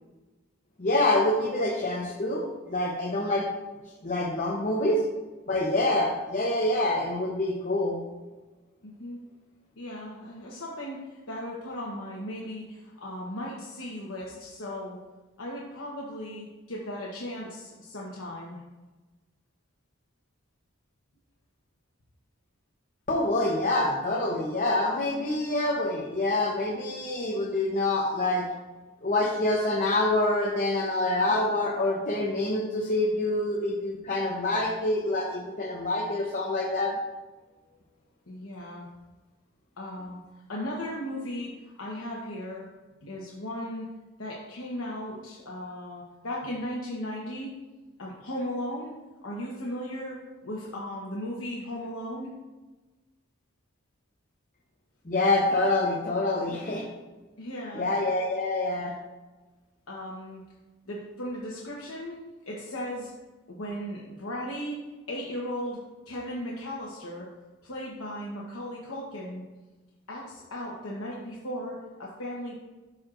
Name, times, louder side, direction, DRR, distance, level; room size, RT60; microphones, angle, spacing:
voice 1, 0.8-3.5 4.0-5.0 5.5-8.0 23.1-28.4 29.0-37.0 55.1-56.9 57.7-58.9, left 2 dB, 40° left, -4 dB, 0.8 m, -26 dB
voice 2, 8.8-9.2 9.8-15.0 15.4-18.6 38.3-38.9 39.8-40.2 40.5-42.7 43.0-43.9 44.2-47.5 48.0-48.9 49.2-52.3 57.4-57.9 59.9-60.4 60.9-62.2 62.5-63.1 63.5-64.8 65.1-67.3 67.6-69.4 70.1-72.6, equal, 80° left, -4 dB, 1.1 m, -36 dB
12.0 x 4.6 x 2.5 m, 1.2 s
head